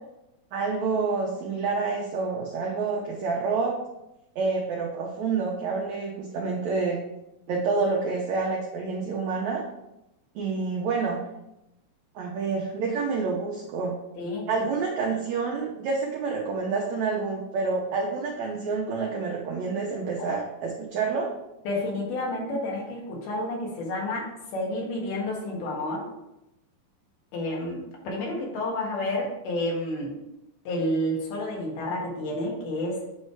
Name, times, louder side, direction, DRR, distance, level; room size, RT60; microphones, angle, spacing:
voice 1, 0.5-3.8 4.3-7.0 7.5-9.6 10.3-11.2 12.1-14.0 14.5-21.3, right 4 dB, 90° right, -1 dB, 1.5 m, -28 dB
voice 2, 21.6-26.0 27.3-30.2 30.6-33.0, left 1 dB, 80° left, -2 dB, 3.4 m, -30 dB
8.1 x 3.2 x 4.6 m, 0.90 s
omnidirectional pair, 4.3 m